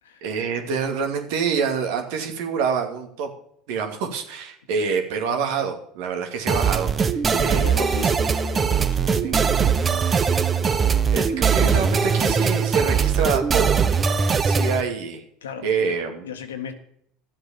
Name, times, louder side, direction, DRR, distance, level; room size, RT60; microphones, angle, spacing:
voice 1, 0.2-3.3 3.7-7.6 9.2-9.3 11.1-13.8 14.4-15.2 15.6-16.2, right 6 dB, 70° right, 5 dB, 2.5 m, -26 dB
sound 1, 6.5-14.8, right 6 dB, 30° right, 1.2 m, -21 dB
voice 2, 7.3-11.8 15.4-16.7, left 8 dB, 85° left, 7 dB, 1.7 m, -38 dB
12.5 x 8.0 x 7.1 m, 0.70 s
hypercardioid pair, 80°, 0 cm